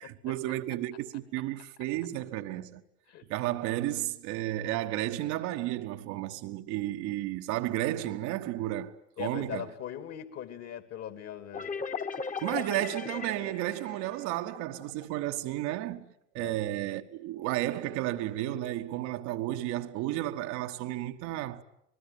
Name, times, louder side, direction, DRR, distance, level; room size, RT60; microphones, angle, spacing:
voice 1, 0.0-2.8 3.3-9.7 12.4-21.6, right 15 dB, 50° right, 1.3 m, -33 dB
voice 2, 9.2-11.7 16.4-16.6, left 10 dB, 40° left, 2.7 m, -40 dB
sound 1, 11.5-15.1, left 5 dB, 20° left, 1.7 m, -38 dB
26.5 x 20.5 x 9.3 m
figure-of-eight pair, 65°, 37 cm